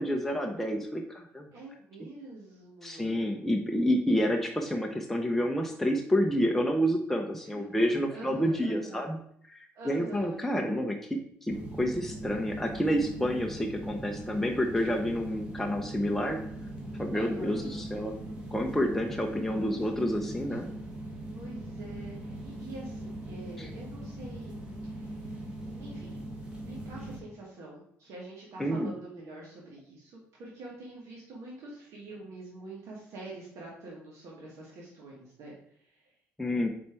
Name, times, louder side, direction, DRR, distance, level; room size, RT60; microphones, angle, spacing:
voice 1, 0.0-1.5 2.8-9.2 9.5-16.4 17.0-18.1 18.5-20.7 23.6-23.7 28.6-28.9 36.4-36.7, equal, 5° left, 2 dB, 0.7 m, -29 dB
voice 2, 1.5-3.3 7.5-9.0 9.7-10.4 17.1-17.8 19.4-20.0 21.3-24.6 24.8-25.4 25.8-26.3 26.7-36.0, right 2 dB, 65° right, -4 dB, 1.6 m, -46 dB
sound 1, 11.5-27.2, right 1 dB, 20° right, 1.9 m, -40 dB
4.9 x 4.4 x 4.4 m, 0.65 s
cardioid pair, 100°, 5 cm